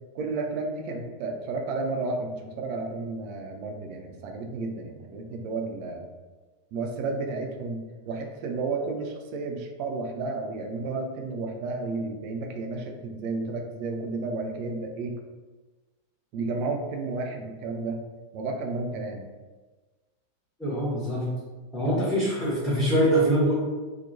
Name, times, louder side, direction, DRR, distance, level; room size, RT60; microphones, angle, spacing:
voice 1, 0.1-6.1 6.7-7.8 8.1-15.2 16.3-18.0 18.3-19.3 21.9-22.0, right 3 dB, 45° right, 3 dB, 0.4 m, -32 dB
voice 2, 20.6-21.3 21.7-23.5, right 1 dB, 10° left, -10 dB, 0.9 m, -24 dB
2.8 x 2.0 x 2.7 m, 1.3 s
figure-of-eight pair, 90°, 0 cm